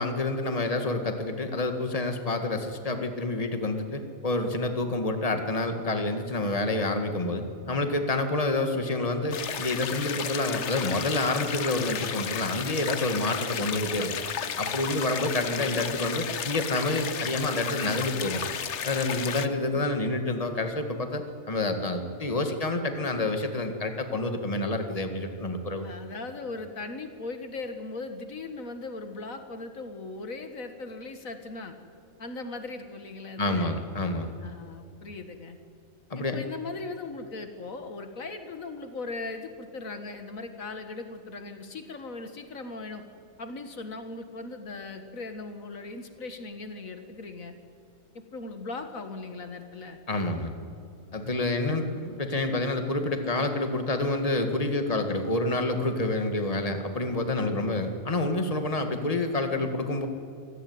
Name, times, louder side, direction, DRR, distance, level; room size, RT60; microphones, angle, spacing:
voice 1, 0.0-14.1 14.6-18.4 18.8-25.9 33.4-34.3 36.1-36.4 50.1-50.5 51.1-60.1, left 2 dB, 25° left, 6 dB, 2.0 m, -28 dB
sound 1, 9.3-19.5, left 8 dB, 60° left, 1.2 m, -33 dB
voice 2, 15.3-16.0 25.8-31.7 32.2-33.8 34.4-35.6 36.2-43.1 43.4-47.5 48.1-50.0 57.4-57.9, left 3 dB, 80° left, 7 dB, 2.2 m, -39 dB
26.5 x 17.0 x 9.6 m, 2.5 s
omnidirectional pair, 1.4 m